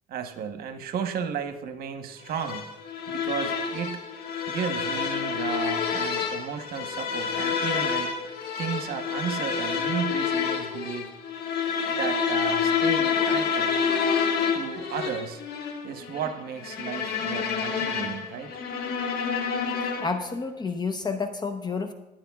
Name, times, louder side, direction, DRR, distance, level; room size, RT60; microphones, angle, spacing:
voice 1, 0.1-2.7 3.1-4.0 4.5-8.1 8.6-11.1 11.9-13.7 14.5-15.4 15.8-18.6, right 7 dB, 65° right, 7 dB, 1.1 m, -34 dB
sound 1, 2.3-20.3, left 6 dB, 65° left, 1.6 m, -28 dB
voice 2, 20.0-21.9, left 4 dB, 25° left, 7 dB, 0.8 m, -30 dB
16.5 x 10.5 x 2.4 m, 1.0 s
cardioid pair, 110°, 17 cm